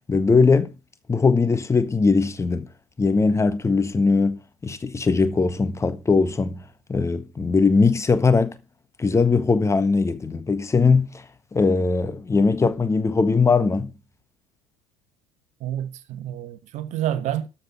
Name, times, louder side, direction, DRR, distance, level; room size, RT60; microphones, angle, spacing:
voice 1, 0.1-0.7 1.1-2.7 3.0-6.6 6.9-8.6 9.0-11.2 11.5-13.9, left 4 dB, 15° left, 1.4 m, -20 dB
voice 2, 15.6-17.5, right 11 dB, 45° right, 1.2 m, -28 dB
13.5 x 5.8 x 7.2 m
figure-of-eight pair, 65°, 17 cm